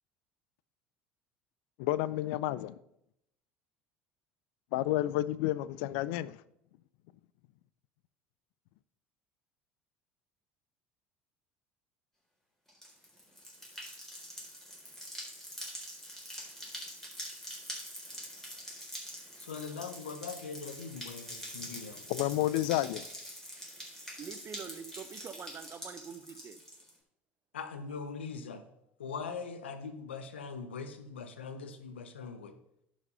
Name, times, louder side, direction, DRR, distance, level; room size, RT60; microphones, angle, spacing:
voice 1, 1.8-2.7 4.7-6.4 22.1-23.1, left 15 dB, 70° left, 0.3 m, -30 dB
sound 1, 12.7-26.9, equal, 5° left, 3.8 m, -45 dB
voice 2, 19.4-22.0 27.5-28.7 29.0-32.6, left 5 dB, 85° left, 0.8 m, -41 dB
voice 3, 24.2-26.6, right 7 dB, 40° right, 0.9 m, -45 dB
10.5 x 5.1 x 5.4 m
hypercardioid pair, 70°, 6 cm